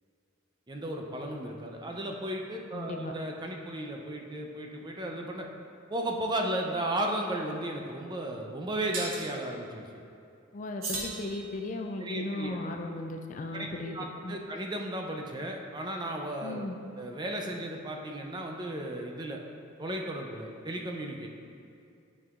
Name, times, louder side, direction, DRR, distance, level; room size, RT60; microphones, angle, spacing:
voice 1, 0.7-5.5 5.9-9.9 12.0-12.6 13.5-16.7 17.0-19.4 19.8-21.3, right 1 dB, 20° right, 1 dB, 0.5 m, -35 dB
voice 2, 2.7-3.1 10.5-14.0 14.2-14.4 16.4-16.8, left 2 dB, 35° left, 4 dB, 0.4 m, -36 dB
sound 1, 8.9-9.3 10.8-11.9, right 2 dB, 75° right, 1.4 m, -37 dB
9.4 x 5.4 x 2.4 m, 2.6 s
head